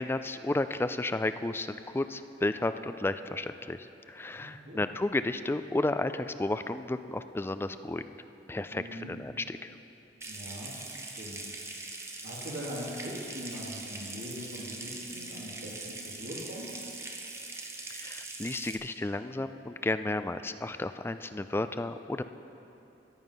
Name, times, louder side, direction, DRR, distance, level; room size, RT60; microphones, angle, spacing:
voice 1, 0.0-3.8 4.1-8.0 8.5-9.7 17.9-22.2, left 2 dB, 15° left, 10 dB, 0.3 m, -32 dB
voice 2, 4.3-4.9 8.7-9.1 10.3-10.7 11.1-11.4 12.2-16.8, equal, 85° right, -8 dB, 2.1 m, -41 dB
Water tap faucet / Sink (filling or washing) / Trickle dribble, 10.2-18.8, right 3 dB, 15° right, 0.9 m, -42 dB
14.0 x 9.6 x 5.5 m, 2.9 s
head